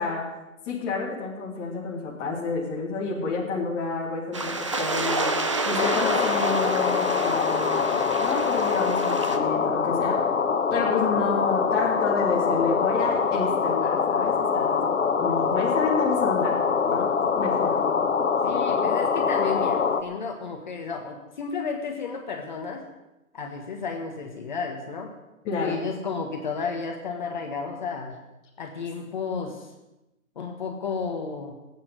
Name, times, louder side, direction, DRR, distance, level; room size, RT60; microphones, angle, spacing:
voice 1, 0.0-10.3 10.7-14.9 15.2-16.6 16.9-17.8 25.4-25.8, left 4 dB, 10° left, -4 dB, 1.8 m, -30 dB
sound 1, 4.3-9.4, right 2 dB, 25° right, 0.6 m, -29 dB
sound 2, 5.8-20.0, left 6 dB, 60° left, 1.5 m, -24 dB
voice 2, 18.4-22.8 23.3-25.2 25.6-28.2 28.6-29.7 30.3-31.6, left 5 dB, 35° left, 3 dB, 1.5 m, -32 dB
15.5 x 8.9 x 9.5 m, 0.98 s
hypercardioid pair, 170°, 41 cm